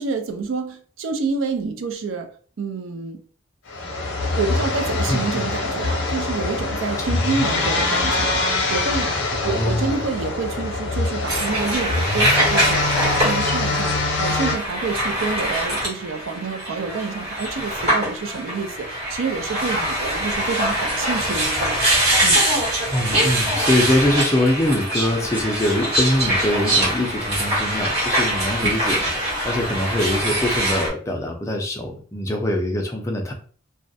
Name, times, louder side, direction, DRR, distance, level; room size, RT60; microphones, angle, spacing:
voice 1, 0.0-2.3 2.6-3.2 4.4-22.0 22.2-22.4, right 4 dB, 85° right, 7 dB, 0.4 m, -28 dB
sound 1, 3.7-14.6, left 2 dB, 70° left, 0.6 m, -24 dB
voice 2, 5.1-5.5 7.1-7.2 9.4-10.0 22.9-29.0 29.4-33.3, left 1 dB, 15° left, 2 dB, 0.4 m, -23 dB
sound 2, 11.3-30.9, right 1 dB, 55° right, 1.2 m, -23 dB
2.3 x 2.0 x 2.6 m, 0.43 s
head